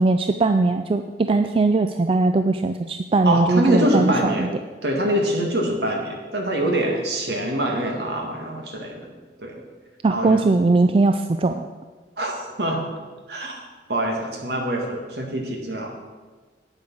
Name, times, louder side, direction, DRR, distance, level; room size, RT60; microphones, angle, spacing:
voice 1, 0.0-4.5 10.0-11.7, right 3 dB, 30° right, 8 dB, 0.3 m, -20 dB
voice 2, 3.2-4.5 4.8-9.1 9.4-9.5 10.1-10.5 12.2-12.8 13.3-13.6 13.9-15.9, right 1 dB, 65° right, 1 dB, 1.9 m, -24 dB
8.4 x 8.2 x 6.2 m, 1.4 s
head